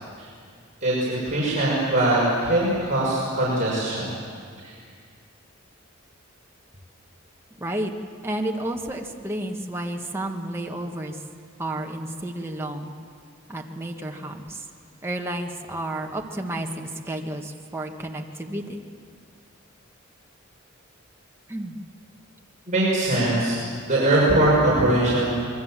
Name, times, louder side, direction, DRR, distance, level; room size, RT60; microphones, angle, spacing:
voice 1, 0.8-4.1 4.6-4.7 22.7-25.3, right 1 dB, 35° right, -7 dB, 6.1 m, -21 dB
voice 2, 7.6-7.9 8.2-11.2 11.6-12.9 13.5-14.6 15.0-18.8 21.5-21.8, right 1 dB, 10° right, 1 dB, 1.6 m, -31 dB
27.0 x 22.0 x 7.5 m, 2.1 s
head